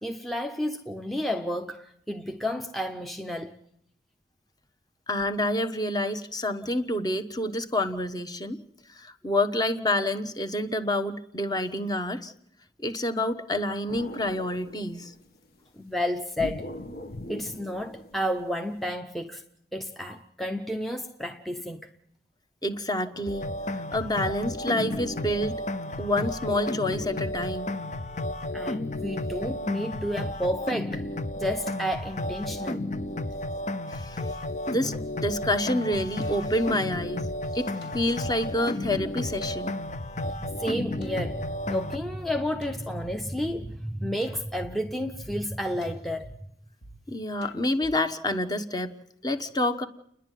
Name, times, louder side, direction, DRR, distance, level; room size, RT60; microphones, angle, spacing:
voice 1, 0.0-3.5 15.8-16.7 17.3-19.4 19.7-21.9 28.5-31.1 31.3-32.9 40.2-46.4, equal, ahead, 0.7 m, -31 dB
voice 2, 5.1-8.6 8.9-12.3 12.8-15.1 22.6-25.5 26.0-27.7 33.9-34.2 34.7-37.3 37.5-39.8 47.1-48.9 49.2-49.8, left 1 dB, 20° left, 1.1 m, -28 dB
sound 1, 13.9-15.4 16.4-18.8, left 1 dB, 55° left, 1.3 m, -41 dB
sound 2, 23.3-42.0, left 1 dB, 40° left, 0.8 m, -33 dB
sound 3, 36.2-39.9 40.4-40.5 41.0-42.1 42.6-43.1 43.6-43.7 44.2-44.7 45.2-45.3 45.8-46.3 46.8-46.9 47.4-47.9, equal, 75° left, 3.0 m, -49 dB
30.0 x 11.0 x 9.2 m
head